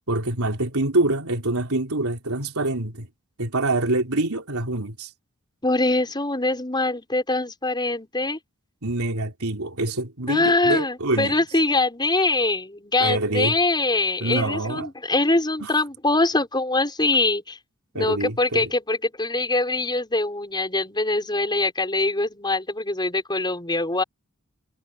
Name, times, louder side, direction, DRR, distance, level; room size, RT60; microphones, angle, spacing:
voice 1, 0.1-3.1 3.4-5.1 8.8-11.4 13.0-13.6 14.2-14.9 15.6-15.7 17.9-18.7, right 2 dB, 75° right, 3.7 m, -25 dB
voice 2, 5.6-8.4 10.3-17.6 17.9-24.0, left 2 dB, 20° left, 5.6 m, -23 dB
head